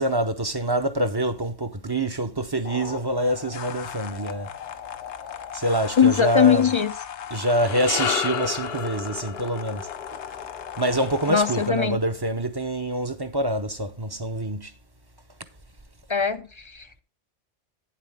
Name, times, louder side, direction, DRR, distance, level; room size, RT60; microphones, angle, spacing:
voice 1, 0.0-4.5 5.5-6.7 7.3-9.9 10.8-14.7, right 1 dB, 25° right, 0.6 m, -26 dB
sound 1, 2.6-11.7, left 9 dB, 85° left, 1.0 m, -38 dB
voice 2, 6.0-6.9 11.3-12.0 16.1-17.0, left 7 dB, 45° left, 0.4 m, -21 dB
sound 2, 7.3-11.7, left 8 dB, 65° left, 1.0 m, -32 dB
9.2 x 7.7 x 3.5 m
omnidirectional pair, 1.2 m